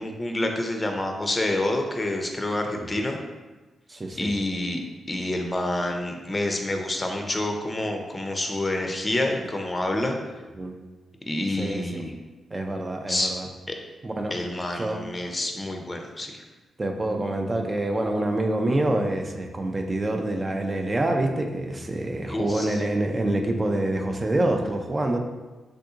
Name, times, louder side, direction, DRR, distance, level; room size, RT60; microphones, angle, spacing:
voice 1, 0.0-3.2 4.2-4.8 5.1-10.2 11.3-12.1 13.1-13.3 13.7-13.8 14.3-16.4 22.3-22.8, left 1 dB, 25° left, 3 dB, 0.5 m, -28 dB
voice 2, 3.9-4.3 10.6-10.7 11.6-12.0 12.5-13.5 14.0-14.4 14.7-15.0 16.8-25.2, right 1 dB, 30° right, 3 dB, 0.4 m, -26 dB
3.6 x 2.6 x 2.4 m, 1.2 s
supercardioid pair, 50°, 0 cm